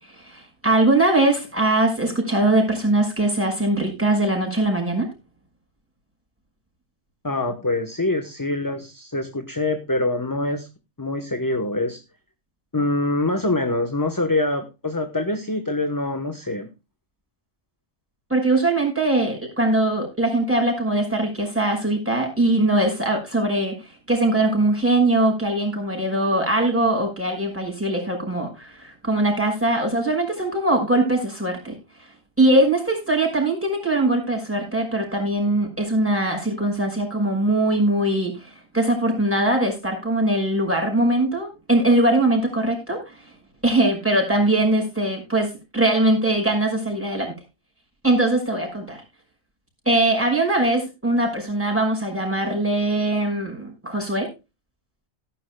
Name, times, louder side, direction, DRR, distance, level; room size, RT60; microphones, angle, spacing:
voice 1, 0.0-5.1 18.3-31.8 32.4-43.1 43.6-47.3 48.0-49.0 49.9-54.3, right 1 dB, 10° right, 2 dB, 5.6 m, -21 dB
voice 2, 7.2-10.7 11.0-12.0 12.7-16.7, left 2 dB, 20° left, 6 dB, 1.1 m, -24 dB
17.5 x 10.5 x 2.3 m, 0.27 s
omnidirectional pair, 1.1 m